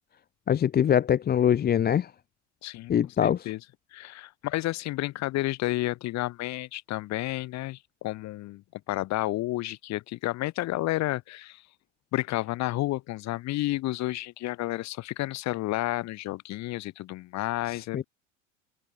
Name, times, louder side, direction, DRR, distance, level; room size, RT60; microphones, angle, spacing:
voice 1, 0.5-2.1 2.9-3.4 17.7-18.0, left 9 dB, 25° left, 1.1 m, -23 dB
voice 2, 3.2-3.6 3.9-11.6 12.1-18.0, left 17 dB, 45° left, 7.9 m, -31 dB
figure-of-eight pair, 75°, 36 cm